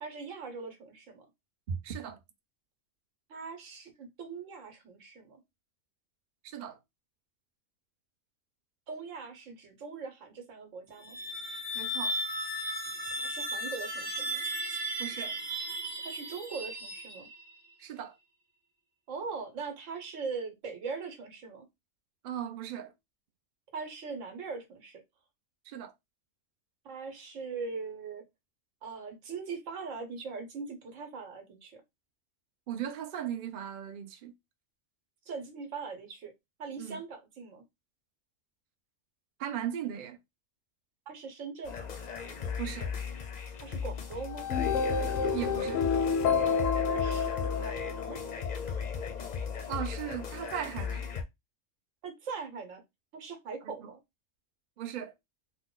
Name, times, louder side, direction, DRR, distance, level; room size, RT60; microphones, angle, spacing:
voice 1, 0.0-1.3 3.3-5.4 8.9-11.2 13.2-14.4 16.0-17.3 19.1-21.7 23.7-25.0 26.8-28.2 28.8-31.8 35.3-36.3 36.6-37.6 41.1-41.9 43.6-44.5 46.9-48.2 52.0-52.8 53.1-54.0, right 5 dB, 90° right, 1.2 m, -41 dB
voice 2, 1.7-2.2 6.4-6.8 11.7-12.2 15.0-15.4 17.8-18.1 22.2-22.9 25.7-25.9 32.7-34.3 36.8-37.0 39.4-40.2 42.6-42.9 45.3-45.9 49.7-51.1 54.8-55.1, right 9 dB, 60° right, 0.5 m, -37 dB
sound 1, 10.9-17.5, right 1 dB, 35° right, 0.9 m, -35 dB
sound 2, 41.6-51.2, left 6 dB, 50° left, 0.5 m, -36 dB
sound 3, 44.3-48.6, left 5 dB, 90° left, 1.0 m, -29 dB
3.0 x 2.1 x 3.7 m
omnidirectional pair, 1.3 m